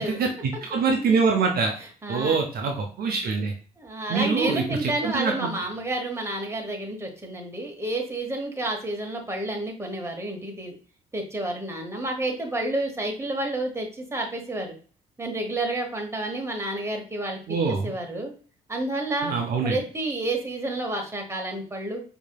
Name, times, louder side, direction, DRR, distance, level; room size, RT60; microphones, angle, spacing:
voice 1, 0.0-1.7 2.1-3.5 4.1-5.5 17.5-17.9 19.2-19.8, right 4 dB, 55° right, 3 dB, 0.6 m, -25 dB
voice 2, 2.0-2.4 3.8-10.7 11.1-14.7 15.2-17.6 17.8-18.3 18.7-19.3 19.6-22.0, right 2 dB, 15° right, 2 dB, 1.1 m, -30 dB
4.6 x 2.8 x 2.2 m, 0.40 s
hypercardioid pair, 45°, 18 cm